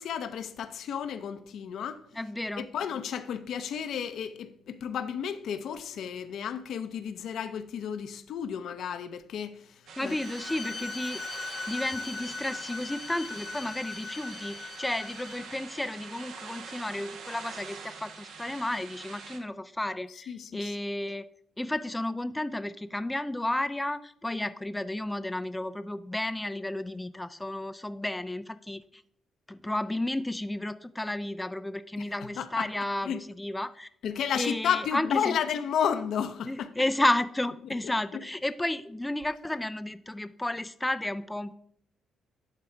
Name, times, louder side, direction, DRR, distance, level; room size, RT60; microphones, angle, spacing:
voice 1, 0.0-2.0 2.6-10.2 20.3-20.7 32.2-32.7 33.0-33.2 34.0-36.7 37.8-38.2, left 8 dB, 70° left, 0.6 m, -32 dB
voice 2, 2.2-2.7 10.0-11.2 11.7-21.3 21.6-28.8 29.5-33.9 34.3-35.4 36.5-41.5, left 1 dB, 10° left, 0.3 m, -32 dB
sound 1, 9.9-19.4, right 5 dB, 80° right, 1.0 m, -45 dB
Bowed string instrument, 10.1-15.6, left 4 dB, 35° left, 0.9 m, -39 dB
10.5 x 3.8 x 4.4 m
cardioid pair, 90°, 0 cm